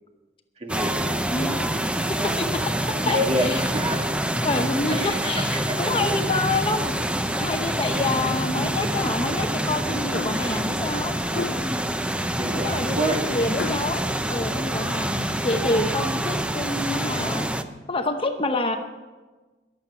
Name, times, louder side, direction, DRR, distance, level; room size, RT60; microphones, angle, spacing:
voice 1, 0.6-1.1 3.0-4.2 4.9-6.0 12.4-13.2, equal, 35° right, 3 dB, 1.7 m, -28 dB
sound 1, 0.7-17.6, right 1 dB, 5° right, 0.6 m, -26 dB
voice 2, 1.3-1.7 2.2-3.7 4.4-7.1 7.4-11.2 12.5-14.0 14.3-17.5 17.9-18.8, left 2 dB, 30° left, 6 dB, 0.8 m, -27 dB
sound 2, 10.1-10.6 11.3-11.8 13.6-14.0, left 4 dB, 75° left, 0.6 m, -32 dB
21.5 x 7.5 x 5.7 m, 1.2 s
head